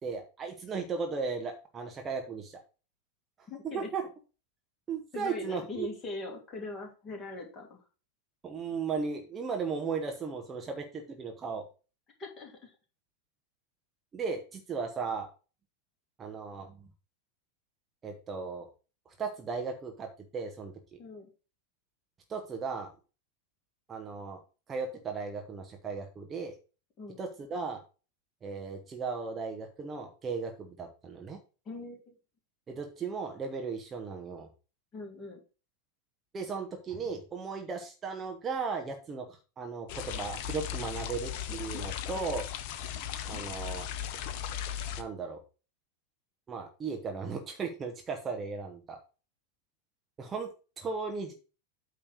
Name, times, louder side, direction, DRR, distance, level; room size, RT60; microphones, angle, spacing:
voice 1, 0.0-2.6 3.7-4.0 4.9-5.9 8.4-11.6 14.1-15.3 16.2-16.9 18.0-18.7 19.1-21.0 22.3-22.9 23.9-24.4 24.7-26.5 27.2-27.8 28.4-31.4 32.7-34.5 36.3-42.5 43.2-43.9 45.0-45.4 46.5-49.0 50.2-50.5 50.8-51.3, right 5 dB, 20° right, 3 dB, 1.1 m, -36 dB
voice 2, 3.5-3.9 5.1-7.8 12.2-12.8 21.0-21.3 27.0-27.2 31.6-32.1 34.9-35.4 42.1-42.2, left 3 dB, 25° left, 0 dB, 2.7 m, -41 dB
sound 1, 39.9-45.0, left 10 dB, 45° left, 0.7 m, -37 dB
8.8 x 3.3 x 6.2 m, 0.34 s
figure-of-eight pair, 90°, 0 cm